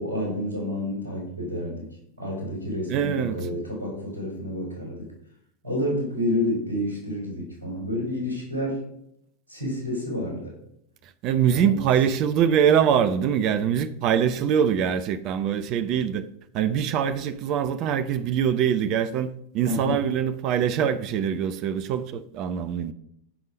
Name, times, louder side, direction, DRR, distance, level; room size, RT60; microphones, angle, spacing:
voice 1, 0.0-1.9 2.2-5.1 5.6-8.8 9.5-10.5 11.5-11.8 19.7-20.0, left 1 dB, 75° right, 5.3 m, -29 dB
voice 2, 2.9-3.4 11.2-16.2 16.5-22.9, right 8 dB, 40° right, 0.7 m, -23 dB
15.0 x 5.6 x 5.0 m
figure-of-eight pair, 90°, 0 cm